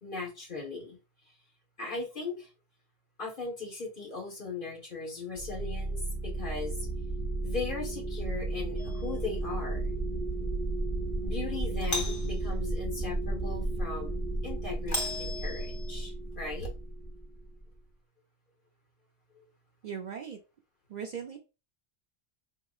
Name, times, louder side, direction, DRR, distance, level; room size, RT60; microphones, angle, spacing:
voice 1, 0.0-1.0 1.8-2.5 3.2-6.9 7.4-9.9 11.2-16.7 19.4-19.5, left 4 dB, 55° left, -2 dB, 1.4 m, -38 dB
sound 1, 5.4-17.6, right 2 dB, 5° left, 0.9 m, -33 dB
Doorbell, 8.8-9.2 11.8-12.4 14.9-16.0, left 1 dB, 20° left, 0.5 m, -36 dB
voice 2, 19.8-20.4 20.9-21.4, right 7 dB, 55° right, 2 dB, 0.5 m, -38 dB
3.6 x 2.9 x 2.3 m, 0.29 s
omnidirectional pair, 1.0 m